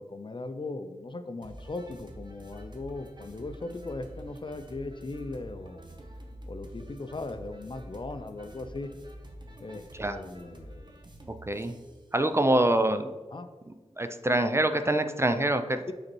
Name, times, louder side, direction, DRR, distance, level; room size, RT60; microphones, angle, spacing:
voice 1, 0.0-5.8 6.5-8.9 9.6-10.9 13.3-13.5 15.9-16.0, left 2 dB, 45° left, 9 dB, 0.4 m, -38 dB
sound 1, 1.4-12.0, equal, 40° right, 1.0 m, -47 dB
voice 2, 11.5-11.8 12.1-13.1 14.0-15.8, right 1 dB, 20° right, 9 dB, 0.4 m, -25 dB
5.2 x 4.1 x 4.5 m, 1.3 s
wide cardioid pair, 55°, 12 cm